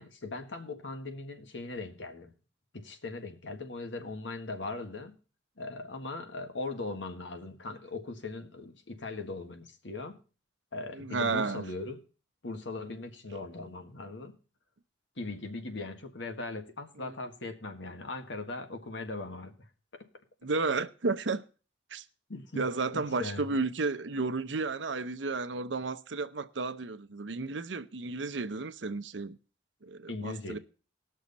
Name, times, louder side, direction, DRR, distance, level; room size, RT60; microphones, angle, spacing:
voice 1, 0.0-2.4 2.7-5.2 5.6-10.2 10.7-12.0 12.4-14.3 15.2-19.7 19.9-20.1 22.3-22.7 22.9-23.5 30.1-30.6, left 2 dB, 85° left, 1.6 m, -39 dB
voice 2, 10.9-11.6 17.0-17.1 20.4-21.4 21.9-22.0 22.6-29.4 29.8-30.6, right 3 dB, 85° right, 0.7 m, -32 dB
19.0 x 6.4 x 4.1 m
head